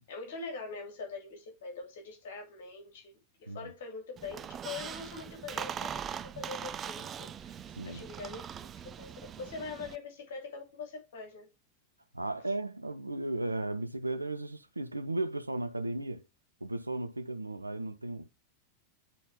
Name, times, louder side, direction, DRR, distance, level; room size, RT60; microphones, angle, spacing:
voice 1, 0.1-11.5, left 4 dB, 55° left, 2.8 m, -43 dB
Squeak, 4.2-10.0, right 8 dB, 25° right, 0.4 m, -41 dB
voice 2, 12.1-16.2 16.6-18.3, right 2 dB, 85° right, 0.5 m, -35 dB
9.1 x 4.2 x 3.5 m
figure-of-eight pair, 90°, 0 cm